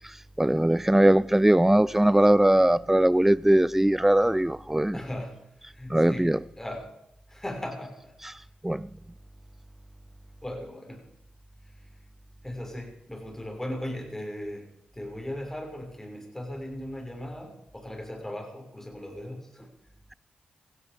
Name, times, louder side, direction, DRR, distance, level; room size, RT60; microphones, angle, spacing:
voice 1, 0.0-5.0 5.9-6.4 8.2-8.3 8.6-8.9, right 1 dB, 10° right, 0.6 m, -21 dB
voice 2, 4.9-5.4 5.7-6.9 7.3-8.4 10.4-11.1 11.8-11.9 12.4-19.7, left 1 dB, 10° left, 6.1 m, -38 dB
17.0 x 16.0 x 5.2 m
supercardioid pair, 50°, 3 cm